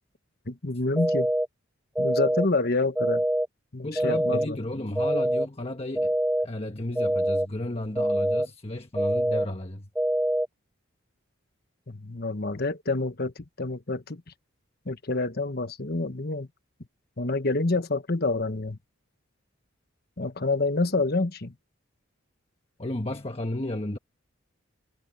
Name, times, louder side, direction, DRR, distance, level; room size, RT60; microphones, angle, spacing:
voice 1, 0.5-1.3 2.0-3.2 3.7-4.6 11.9-14.2 14.8-16.5 17.2-18.8 20.2-21.5, left 3 dB, 50° left, 1.3 m, -28 dB
sound 1, 1.0-1.5 2.0-2.5 3.0-3.5 4.0-4.5 5.0-5.5 6.0-6.5 7.0-7.5 8.0-8.5 9.0-9.5 10.0-10.5, right 1 dB, 5° right, 0.3 m, -24 dB
voice 2, 3.8-6.1 6.4-9.9 22.8-24.0, left 1 dB, 30° left, 1.4 m, -33 dB
head